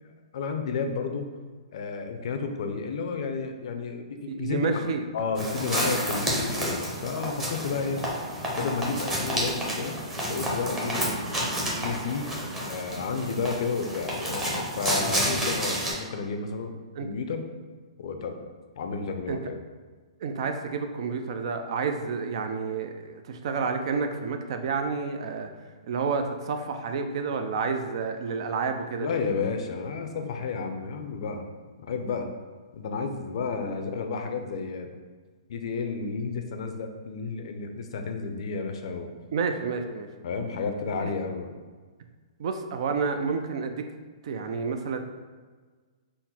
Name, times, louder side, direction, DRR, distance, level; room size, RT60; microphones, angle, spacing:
voice 1, 0.3-1.3 1.7-4.7 5.1-8.0 8.5-10.0 10.3-11.2 11.8-12.3 12.6-17.4 18.0-18.4 18.8-19.6 29.0-31.4 31.8-32.3 32.7-34.9 35.5-39.1 40.2-41.5, left 5 dB, 60° left, 5 dB, 0.5 m, -31 dB
voice 2, 4.3-5.0 7.9-8.0 17.0-17.1 19.3-19.4 20.2-25.5 25.9-29.1 39.3-40.1 41.0-41.1 42.4-43.8 44.2-45.0, right 5 dB, 55° right, 6 dB, 0.4 m, -29 dB
sound 1, 5.3-15.9, equal, 10° right, 0.8 m, -30 dB
3.8 x 2.1 x 4.3 m, 1.4 s
hypercardioid pair, 145°, 3 cm